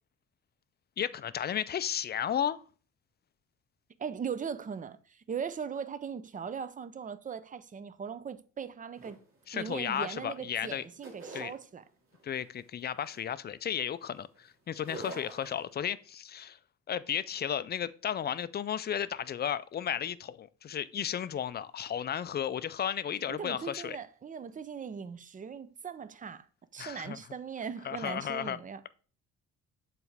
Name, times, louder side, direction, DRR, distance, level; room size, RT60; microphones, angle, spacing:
voice 1, 1.0-2.6 9.5-10.8 11.3-11.5 12.2-16.6 16.9-24.0 26.8-27.2 27.8-28.6, left 9 dB, 35° left, 0.4 m, -34 dB
voice 2, 4.0-9.2 9.5-11.8 23.3-26.5 26.7-28.8, right 6 dB, 25° right, 0.5 m, -39 dB
sound 1, 9.0-10.2 10.5-11.6 12.1-12.5 13.0-14.4 14.7-15.7, right 2 dB, 45° right, 2.3 m, -46 dB
7.0 x 4.1 x 3.4 m
cardioid pair, 90°, 30 cm